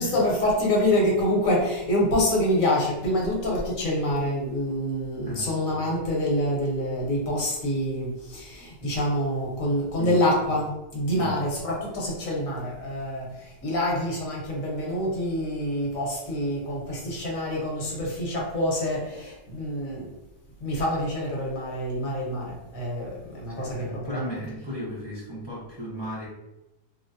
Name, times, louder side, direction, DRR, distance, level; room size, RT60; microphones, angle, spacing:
voice 1, 0.0-20.1 20.6-24.3, left 1 dB, 80° left, -3 dB, 1.4 m, -26 dB
voice 2, 5.2-5.6 9.9-10.2 11.1-11.4 23.6-26.3, equal, 25° right, -7 dB, 0.7 m, -35 dB
3.1 x 2.6 x 2.6 m, 0.96 s
omnidirectional pair, 1.4 m